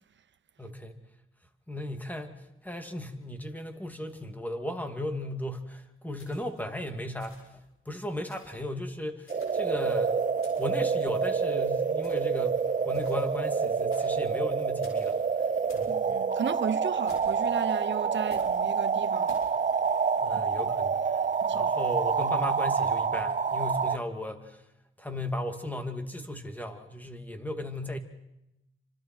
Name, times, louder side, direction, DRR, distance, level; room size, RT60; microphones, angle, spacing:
voice 1, 0.6-1.0 1.7-7.5 7.9-10.2 10.6-15.2 15.7-16.1 20.2-21.2 21.5-24.6 25.0-28.0, left 1 dB, 10° left, 2.5 m, -36 dB
sound 1, 6.2-6.7 7.2-7.6 8.3-8.6 9.3-9.8 10.4-10.8 12.0-12.4 12.9-13.4 13.9-14.3 14.8-15.2 15.7-16.0 17.1-17.5 18.3-18.6 19.3-19.6, left 2 dB, 75° left, 6.7 m, -53 dB
sound 2, 9.3-24.0, right 6 dB, 35° right, 0.8 m, -27 dB
voice 2, 15.9-19.4 20.3-20.4 21.4-21.7, right 8 dB, 60° right, 1.0 m, -35 dB
28.5 x 25.5 x 4.5 m
cardioid pair, 100°, 21 cm